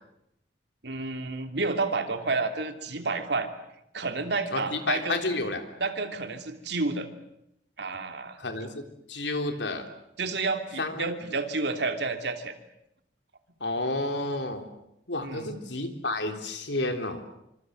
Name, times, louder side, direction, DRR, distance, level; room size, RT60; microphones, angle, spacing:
voice 1, 0.8-3.5 3.9-5.2 5.8-7.1 7.8-8.4 10.2-12.5 15.2-15.5, right 3 dB, 75° right, 7 dB, 3.0 m, -30 dB
voice 2, 4.5-5.6 8.4-8.8 9.1-9.8 10.8-11.1 13.6-14.6 15.1-17.2, left 2 dB, 85° left, 6 dB, 3.6 m, -30 dB
26.5 x 25.5 x 7.9 m, 0.80 s
head